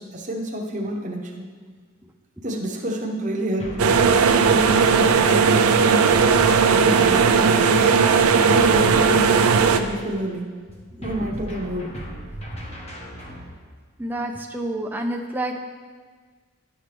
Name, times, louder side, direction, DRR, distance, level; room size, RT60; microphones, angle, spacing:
voice 1, 0.0-1.5 2.4-4.1 4.4-6.1 6.5-7.7 8.3-10.5 11.0-12.0, equal, 35° right, 1 dB, 0.8 m, -28 dB
sound 1, 3.6-5.3 6.1-10.2 11.0-13.5, right 1 dB, 30° left, 1.1 m, -37 dB
sound 2, 3.8-9.8, right 5 dB, 80° right, 0.4 m, -17 dB
voice 2, 11.0-11.3 14.0-15.6, right 1 dB, 10° right, 2 dB, 0.4 m, -29 dB
10.0 x 5.9 x 3.4 m, 1.5 s
head